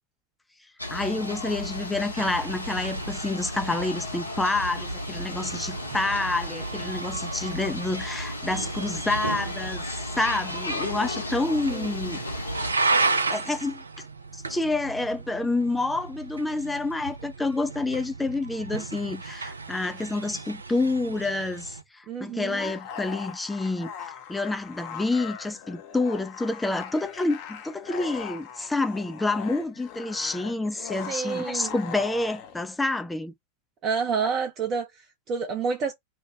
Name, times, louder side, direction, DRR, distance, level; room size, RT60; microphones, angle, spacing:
sound 1, 0.8-12.7, left 1 dB, 85° left, 0.8 m, -34 dB
voice 1, 0.9-12.2 13.0-13.8 14.3-33.3, left 2 dB, 5° left, 0.4 m, -28 dB
sound 2, 2.2-21.8, right 3 dB, 75° right, 0.4 m, -34 dB
voice 2, 22.1-22.7 31.1-31.8 33.8-35.9, right 5 dB, 30° right, 0.7 m, -29 dB
sound 3, 22.4-32.6, left 8 dB, 45° left, 0.7 m, -40 dB
2.9 x 2.2 x 3.4 m
figure-of-eight pair, 90°, 0 cm